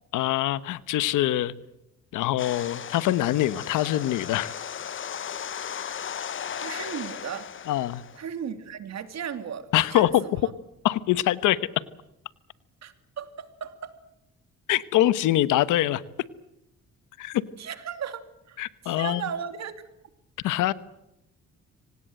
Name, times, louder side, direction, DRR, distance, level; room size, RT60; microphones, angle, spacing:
voice 1, 0.1-1.5 2.1-4.5 5.7-5.8 7.7-8.0 9.7-10.2 10.8-11.6 14.7-16.0 17.2-17.4 18.6-19.2 20.4-20.7, left 14 dB, 90° left, 16 dB, 1.1 m, -24 dB
sound 1, 2.4-8.3, left 8 dB, 40° left, 0.8 m, -36 dB
voice 2, 6.5-7.5 8.2-10.5 12.8-13.9 17.6-19.7, right 8 dB, 60° right, 10 dB, 2.7 m, -36 dB
25.5 x 18.5 x 7.8 m, 0.87 s
cardioid pair, 90°, 30 cm